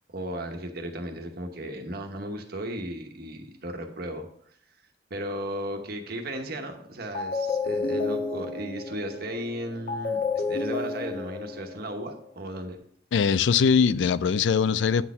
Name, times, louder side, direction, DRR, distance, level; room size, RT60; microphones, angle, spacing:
voice 1, 0.0-4.3 5.1-12.8, right 1 dB, 60° right, 1.1 m, -35 dB
sound 1, 6.5-6.8 7.1-12.3, left 3 dB, 55° left, 1.4 m, -31 dB
voice 2, 13.1-15.0, left 6 dB, 80° left, 0.4 m, -21 dB
8.9 x 4.2 x 5.6 m
head